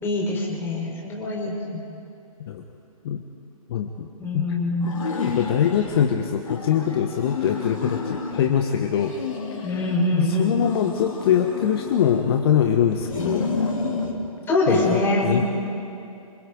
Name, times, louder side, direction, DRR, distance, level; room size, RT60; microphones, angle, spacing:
voice 1, 0.0-1.8 4.2-5.1 9.6-10.6 14.5-15.4, left 2 dB, 10° left, -3 dB, 4.4 m, -24 dB
voice 2, 3.7-4.1 4.3-4.4 5.2-9.1 9.6-9.8 10.1-13.5 14.7-15.4, left 9 dB, 45° left, 4 dB, 1.3 m, -23 dB
sound 1, 4.8-6.1 6.4-8.5 8.9-10.2 10.6-12.5 13.0-14.2, left 4 dB, 60° left, 3.4 m, -30 dB
27.5 x 24.5 x 4.0 m, 2.7 s
figure-of-eight pair, 130°, 18 cm